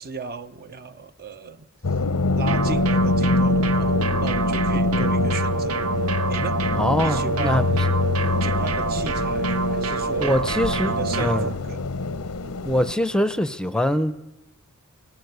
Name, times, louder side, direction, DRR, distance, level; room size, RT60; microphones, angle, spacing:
voice 1, 0.0-2.0 2.3-5.8 6.3-6.6 7.0-7.9 8.4-10.4 10.8-11.9 12.4-12.7, right 4 dB, 45° right, 0.9 m, -35 dB
sound 1, 1.8-12.9, left 3 dB, 90° left, 0.9 m, -24 dB
sound 2, 2.5-11.5, right 4 dB, 75° right, 1.0 m, -27 dB
voice 2, 6.8-7.8 10.2-11.5 12.6-14.1, left 1 dB, 5° left, 0.7 m, -23 dB
23.0 x 18.5 x 8.1 m
head